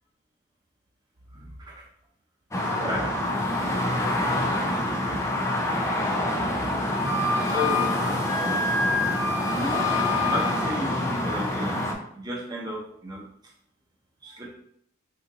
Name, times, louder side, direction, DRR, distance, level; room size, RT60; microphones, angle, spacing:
voice 1, 1.3-1.8 2.6-3.2 6.5-6.7 7.4-8.7 9.5-9.9 10.2-11.9 12.1-13.2 14.2-14.5, equal, 20° right, -4 dB, 0.8 m, -33 dB
sound 1, 2.5-11.9, left 1 dB, 15° left, 0.4 m, -27 dB
Wind instrument woodwind instrument, 7.0-10.8, left 3 dB, 70° left, 0.6 m, -28 dB
2.8 x 2.5 x 3.8 m, 0.68 s
head